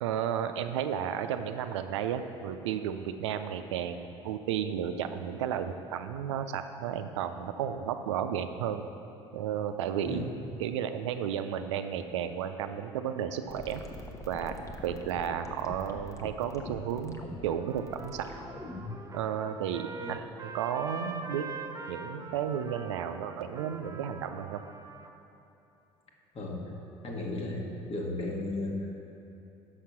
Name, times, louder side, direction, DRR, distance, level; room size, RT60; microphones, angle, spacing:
voice 1, 0.0-8.9 9.3-10.3 10.6-13.8 14.3-18.3 19.1-19.8 20.1-21.5 21.9-24.6, right 9 dB, 85° right, 8 dB, 0.4 m, -33 dB
analog burbles, 13.5-19.1, left 2 dB, 20° left, 0.8 m, -43 dB
Trumpet, 17.5-25.1, right 3 dB, 25° right, 0.5 m, -43 dB
voice 2, 27.0-27.6 27.9-29.1, left 2 dB, 40° left, 0 dB, 1.5 m, -34 dB
6.4 x 5.9 x 5.7 m, 2.9 s
hypercardioid pair, 65°, 15 cm